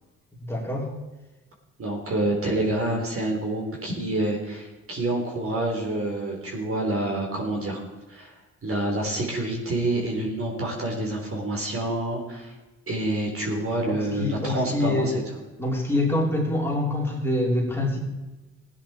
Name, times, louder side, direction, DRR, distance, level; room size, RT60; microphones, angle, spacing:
voice 1, 0.4-0.9 13.8-15.2 15.6-18.0, left 1 dB, 10° left, -3 dB, 3.5 m, -25 dB
voice 2, 1.8-7.8 8.1-8.3 8.6-12.5 12.9-15.2, right 1 dB, 45° right, 0 dB, 3.9 m, -27 dB
16.5 x 10.0 x 4.4 m, 1.1 s
cardioid pair, 90°, 30 cm